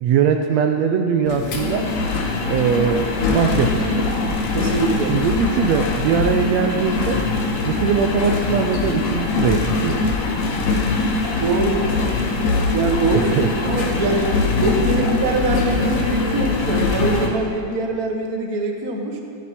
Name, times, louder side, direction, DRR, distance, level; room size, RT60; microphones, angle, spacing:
voice 1, 0.0-1.9 2.5-4.1 5.1-7.2 7.6-10.0 13.1-13.5, right 7 dB, 90° right, 5 dB, 1.5 m, -21 dB
Engine, 1.3-17.3, left 3 dB, 85° left, 3.7 m, -22 dB
voice 2, 4.5-5.1 11.4-11.8 12.7-13.4 13.7-14.3 14.5-19.2, right 3 dB, 40° right, 2 dB, 1.3 m, -23 dB
28.0 x 12.0 x 4.3 m, 2.4 s
omnidirectional pair, 4.0 m